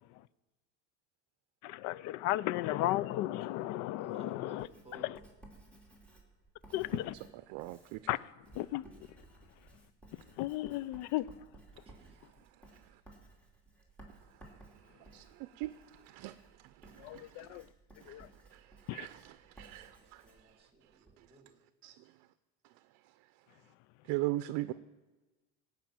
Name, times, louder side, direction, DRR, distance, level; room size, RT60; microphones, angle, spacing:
voice 1, 1.6-4.7 5.0-5.2 6.7-7.1 8.1-8.3 8.5-8.8 10.4-11.3 17.0-17.7 18.0-18.3 18.9-19.1, left 16 dB, 65° left, 0.5 m, -34 dB
voice 2, 4.0-5.1 11.9-12.3 19.7-21.5, right 2 dB, 20° right, 2.2 m, -57 dB
Writing, 4.6-21.2, right 2 dB, 5° left, 2.8 m, -58 dB
voice 3, 7.5-8.0 15.1-16.4 16.8-17.6 18.0-18.2 18.5-18.7 18.9-20.2 21.8-22.0 24.1-24.7, right 18 dB, 75° right, 0.6 m, -39 dB
17.5 x 5.8 x 7.6 m
cardioid pair, 145°, 30 cm